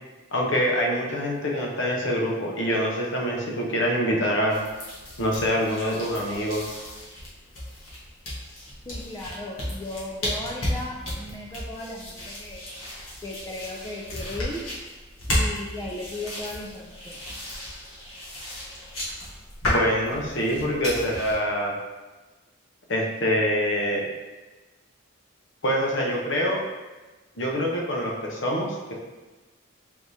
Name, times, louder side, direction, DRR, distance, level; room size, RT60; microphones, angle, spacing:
voice 1, 0.3-4.6 5.2-6.6 19.6-21.8 22.9-24.1 25.6-26.6 27.4-28.9, equal, 65° left, -1 dB, 0.8 m, -25 dB
sound 1, 4.5-21.4, left 1 dB, 80° left, 1.3 m, -33 dB
voice 2, 8.9-12.6 13.2-14.6 15.3-17.2, left 2 dB, 20° left, -3 dB, 0.3 m, -36 dB
4.6 x 3.5 x 2.7 m, 1.2 s
head